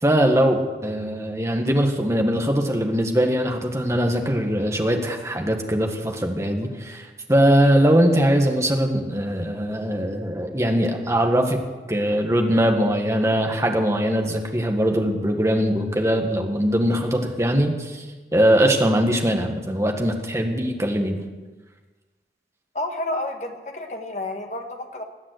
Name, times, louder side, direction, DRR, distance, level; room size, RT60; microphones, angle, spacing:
voice 1, 0.0-11.6 11.9-18.0 18.3-21.2, equal, 15° right, 3 dB, 1.5 m, -21 dB
voice 2, 22.7-25.0, left 2 dB, 40° left, 4 dB, 1.6 m, -30 dB
20.0 x 7.4 x 8.0 m, 1.3 s
head